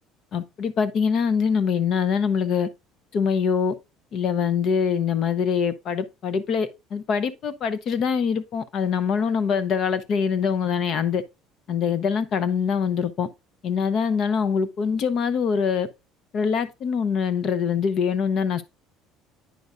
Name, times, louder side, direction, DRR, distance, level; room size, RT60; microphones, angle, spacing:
voice 1, 0.3-2.7 3.1-3.8 4.1-11.2 11.7-13.3 13.6-15.9 16.3-18.6, left 6 dB, 35° left, 0.5 m, -24 dB
9.2 x 5.3 x 2.3 m
cardioid pair, 175°, 0 cm